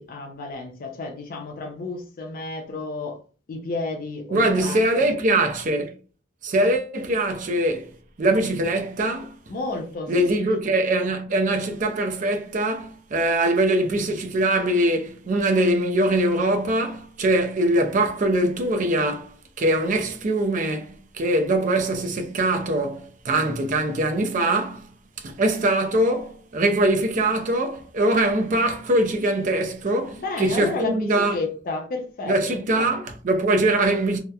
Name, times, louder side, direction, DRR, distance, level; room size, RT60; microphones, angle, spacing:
voice 1, 0.0-3.2 3.5-5.1 9.5-10.6 30.2-32.9, left 3 dB, 50° left, 0.4 m, -32 dB
voice 2, 4.3-5.9 6.4-7.9 8.2-9.4 10.1-24.9 25.2-31.4 32.3-34.2, right 1 dB, 40° right, 0.4 m, -22 dB
2.8 x 2.0 x 2.3 m
head